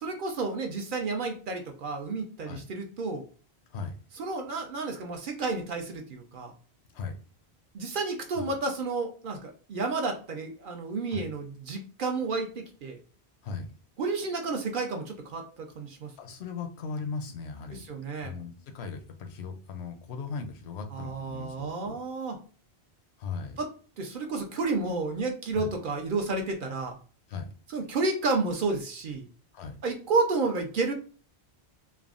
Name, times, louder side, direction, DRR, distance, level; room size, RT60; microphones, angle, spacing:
voice 1, 0.0-3.2 4.2-6.5 7.7-13.0 14.0-16.1 17.7-18.3 20.9-22.4 23.6-23.7 24.0-27.0 27.7-29.2 29.8-30.9, right 3 dB, 60° right, 3 dB, 0.7 m, -31 dB
voice 2, 16.2-17.8 18.2-22.0 23.2-23.6 25.5-25.7 27.3-27.5 29.5-29.8, left 5 dB, 80° left, 6 dB, 0.8 m, -38 dB
3.4 x 2.0 x 2.4 m, 0.40 s
omnidirectional pair, 1.1 m